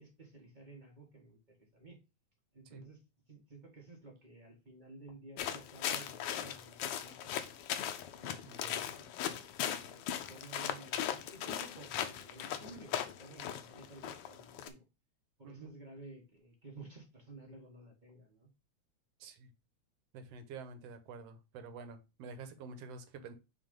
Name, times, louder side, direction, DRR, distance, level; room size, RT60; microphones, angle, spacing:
voice 1, 0.0-2.0 2.5-3.0 3.3-7.5 8.1-14.8 15.4-18.5, right 2 dB, 30° right, 0 dB, 0.8 m, -54 dB
sound 1, 5.4-14.7, left 10 dB, 80° left, 1.3 m, -39 dB
voice 2, 8.5-8.8 15.4-15.7 19.2-19.5 20.1-23.3, right 4 dB, 70° right, 9 dB, 1.8 m, -48 dB
6.2 x 3.9 x 5.2 m, 0.28 s
omnidirectional pair, 3.3 m